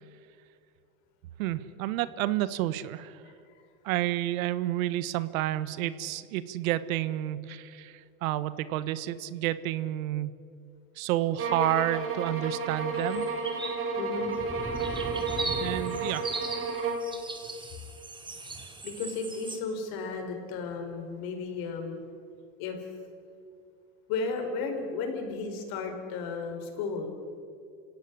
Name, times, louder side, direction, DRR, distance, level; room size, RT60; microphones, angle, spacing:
voice 1, 1.4-3.2 3.8-10.3 11.0-13.3 15.6-16.3, right 14 dB, 80° right, 15 dB, 1.4 m, -30 dB
sound 1, 11.4-17.1, right 3 dB, 30° right, 4.2 m, -32 dB
sound 2, 13.1-13.8 14.2-19.6, right 3 dB, 10° right, 3.0 m, -38 dB
voice 2, 14.0-14.3 18.4-22.0 22.6-22.9 24.1-27.1, left 4 dB, 60° left, 4 dB, 5.4 m, -34 dB
28.0 x 17.0 x 10.0 m, 2.4 s
supercardioid pair, 125°, 41 cm